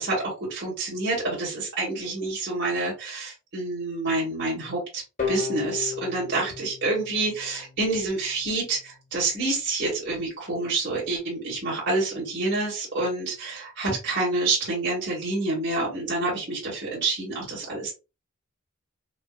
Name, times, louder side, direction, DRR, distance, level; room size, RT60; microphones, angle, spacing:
voice 1, 0.0-5.0 5.3-17.9, right 2 dB, 55° right, -5 dB, 2.0 m, -28 dB
sound 1, 5.2-8.0, left 6 dB, 45° left, 1.2 m, -33 dB
5.3 x 2.1 x 2.4 m, 0.30 s
head